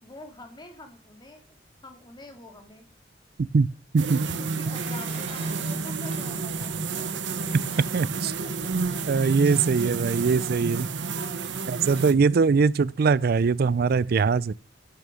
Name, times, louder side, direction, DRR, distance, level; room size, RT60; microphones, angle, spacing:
voice 1, 0.0-1.4 1.8-2.9 4.4-7.1 7.9-8.0 8.4-8.7 11.5-11.7, left 2 dB, 25° left, 2.1 m, -46 dB
sound 1, 4.0-12.1, right 4 dB, 75° right, 0.9 m, -30 dB
Dishes pots and pans, 4.6-9.9 10.2-10.3, right 2 dB, 35° right, 3.0 m, -46 dB
voice 2, 7.9-8.3 9.1-10.9 11.7-14.5, right 5 dB, 55° right, 0.4 m, -22 dB
10.5 x 6.4 x 6.3 m
head